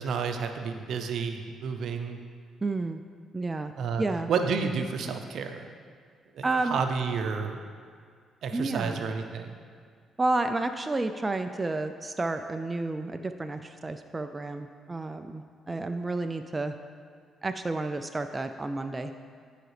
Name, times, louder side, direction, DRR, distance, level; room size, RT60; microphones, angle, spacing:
voice 1, 0.0-2.2 3.7-5.7 6.3-7.6 8.4-9.6, right 5 dB, 70° right, 6 dB, 0.6 m, -31 dB
voice 2, 2.6-3.0 3.3-3.7 4.0-4.3 6.4-6.8 8.5-9.1 10.2-16.7 17.4-19.2, right 2 dB, 20° right, 7 dB, 0.3 m, -31 dB
10.5 x 4.9 x 3.3 m, 2.1 s
cardioid pair, 90°, 0 cm